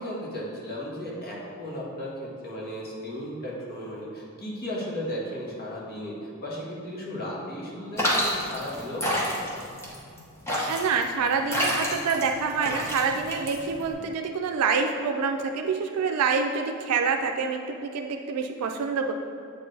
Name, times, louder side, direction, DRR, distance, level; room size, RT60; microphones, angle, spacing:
voice 1, 0.0-9.5, equal, 45° left, -5 dB, 1.5 m, -35 dB
sound 1, 8.0-13.9, equal, 10° left, 1.0 m, -28 dB
voice 2, 10.7-19.1, right 5 dB, 85° right, 4 dB, 0.4 m, -26 dB
8.1 x 4.4 x 3.3 m, 2.5 s
head